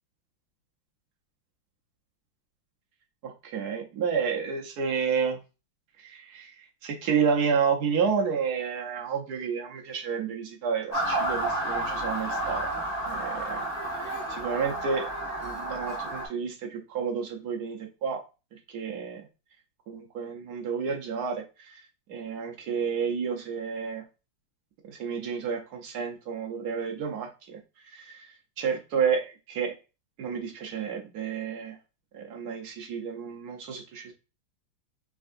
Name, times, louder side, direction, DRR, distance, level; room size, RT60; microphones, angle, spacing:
voice 1, 3.2-5.4 6.0-12.7 13.0-13.7 13.9-15.1 15.4-18.2 18.5-19.2 19.9-21.8 22.1-24.0 24.9-29.7 30.2-31.8 32.1-34.1, right 6 dB, 65° right, 1 dB, 1.1 m, -30 dB
Motor vehicle (road) / Siren, 10.9-16.3, right 1 dB, 20° left, 1.3 m, -31 dB
3.6 x 3.4 x 2.5 m, 0.30 s
omnidirectional pair, 2.1 m